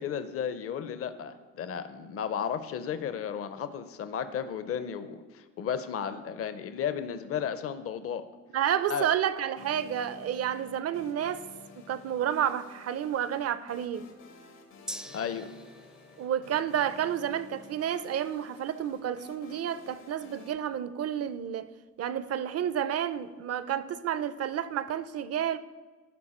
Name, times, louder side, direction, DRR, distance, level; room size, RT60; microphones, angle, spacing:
voice 1, 0.0-8.2 8.9-9.1 15.1-15.5, left 8 dB, 50° left, 0.6 m, -34 dB
voice 2, 8.5-11.4 11.8-14.1 16.2-21.7 22.0-25.6, right 9 dB, 55° right, 0.5 m, -30 dB
sound 1, 9.6-20.5, left 4 dB, 85° left, 1.4 m, -53 dB
Gong, 14.9-22.6 23.0-23.1, equal, ahead, 0.4 m, -50 dB
13.0 x 4.6 x 4.3 m
cardioid pair, 90°, 30 cm